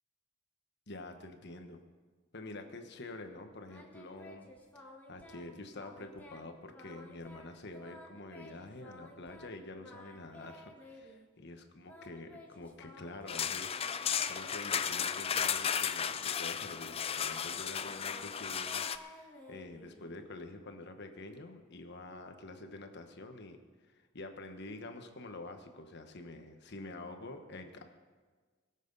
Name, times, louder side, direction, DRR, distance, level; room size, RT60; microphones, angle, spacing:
voice 1, 0.9-1.8 2.3-4.5 4.7-23.6 23.9-27.8, left 2 dB, 55° left, 6 dB, 1.3 m, -47 dB
Singing, 3.7-5.5 5.7-6.5 6.7-9.5 9.8-11.3 11.9-15.5 15.8-20.2, left 1 dB, 10° left, 1.9 m, -54 dB
sound 1, 13.3-19.0, left 7 dB, 30° left, 0.4 m, -34 dB
21.5 x 7.6 x 5.5 m, 1.4 s
head